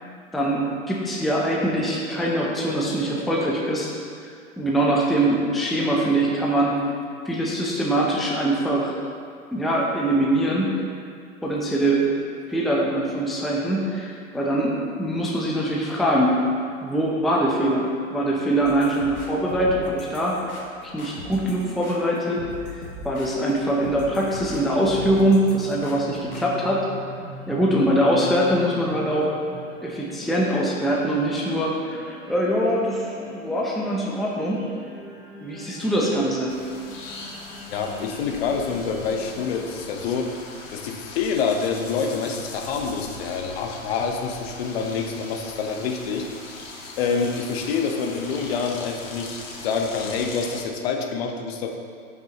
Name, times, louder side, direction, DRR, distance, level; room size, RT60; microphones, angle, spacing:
voice 1, 0.3-3.9 4.6-6.7 7.3-8.9 9.5-10.7 11.4-12.0 12.5-14.7 15.0-16.3 16.8-20.4 20.8-22.4 22.7-26.9 27.5-29.4 29.8-34.6 35.4-36.5, right 1 dB, ahead, -4 dB, 0.7 m, -23 dB
sound 1, 18.6-26.5, left 2 dB, 85° left, 1.8 m, -40 dB
sound 2, 22.8-39.5, right 2 dB, 15° right, 2.0 m, -41 dB
sound 3, 36.5-50.6, left 3 dB, 65° left, 1.9 m, -40 dB
voice 2, 37.7-40.3 40.7-46.6 47.0-51.8, left 5 dB, 45° left, 3 dB, 1.1 m, -27 dB
15.0 x 6.0 x 3.0 m, 2.2 s
hypercardioid pair, 115°, 42 cm